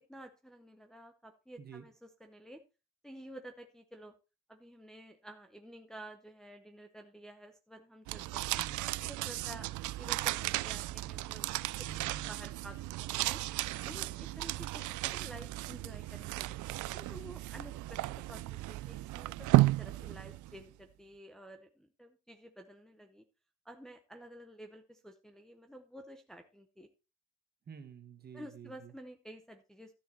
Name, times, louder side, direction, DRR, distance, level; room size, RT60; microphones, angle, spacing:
voice 1, 0.1-2.6 3.0-4.1 4.5-8.6 9.1-9.7 10.0-11.5 11.8-11.9 12.3-13.4 13.8-14.9 15.1-16.6 16.9-23.2 23.6-26.9 28.3-29.9, right 1 dB, ahead, 4 dB, 0.7 m, -51 dB
sound 1, 8.1-20.6, right 17 dB, 80° right, 0.4 m, -34 dB
voice 2, 8.6-8.9 11.9-12.4 27.7-28.9, right 6 dB, 35° right, 9 dB, 1.4 m, -49 dB
13.0 x 6.9 x 4.3 m, 0.29 s
cardioid pair, 180°, 29 cm